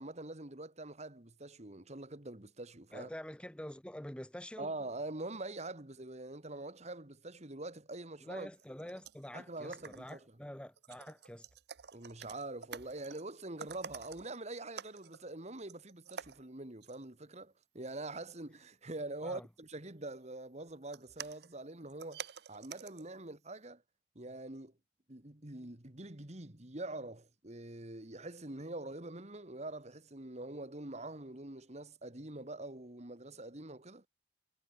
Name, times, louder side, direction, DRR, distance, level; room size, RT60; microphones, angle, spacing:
voice 1, 0.0-3.1 4.6-8.5 9.3-10.2 11.9-23.8 24.2-24.7 25.1-34.1, right 2 dB, 40° right, 2.3 m, -44 dB
voice 2, 2.9-4.7 8.2-11.5 19.2-19.5, equal, 5° left, 1.0 m, -46 dB
sound 1, 8.6-9.3 9.5-10.3 10.7-13.3 13.6-14.4 14.8-15.3 15.6-16.5 16.8-17.1 19.9-20.1 20.6-23.1 23.5-23.6, right 7 dB, 65° right, 0.8 m, -49 dB
head